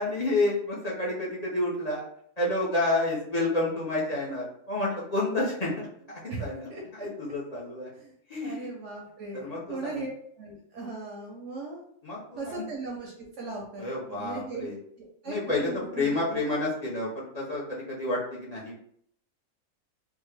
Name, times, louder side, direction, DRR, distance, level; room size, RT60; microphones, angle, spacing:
voice 1, 0.0-2.1 2.4-7.9 8.3-8.7 9.3-10.0 12.0-12.6 13.8-14.8 15.2-18.8, left 2 dB, 45° left, -6 dB, 0.5 m, -30 dB
voice 2, 6.3-7.1 8.0-11.8 12.4-14.7 15.0-16.4, right 3 dB, 60° right, -2 dB, 0.8 m, -38 dB
3.5 x 2.1 x 3.2 m, 0.66 s
omnidirectional pair, 1.7 m